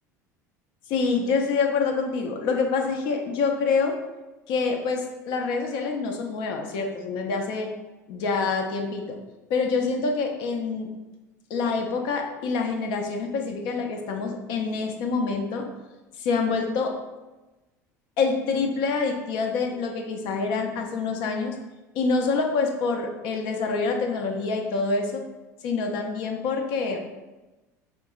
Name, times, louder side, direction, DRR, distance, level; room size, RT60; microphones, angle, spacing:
voice 1, 0.9-3.9 4.5-7.7 8.1-9.2 9.5-10.9 11.5-15.7 16.2-16.9 18.2-21.6 21.9-25.2 25.6-27.0, left 4 dB, 55° left, 3 dB, 0.5 m, -26 dB
5.1 x 2.0 x 2.4 m, 1.1 s
hypercardioid pair, 70°, 9 cm